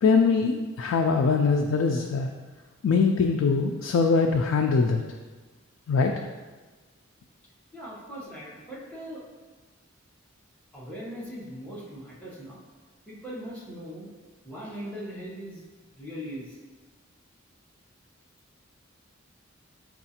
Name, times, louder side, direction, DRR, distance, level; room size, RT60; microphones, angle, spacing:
voice 1, 0.0-2.3 2.8-5.0 5.9-6.1, left 4 dB, 90° left, 2 dB, 0.3 m, -22 dB
voice 2, 7.7-9.2 10.7-12.6 13.1-14.1 14.4-15.6 16.0-16.6, equal, 5° left, -8 dB, 1.0 m, -39 dB
6.3 x 2.4 x 2.8 m, 1.3 s
head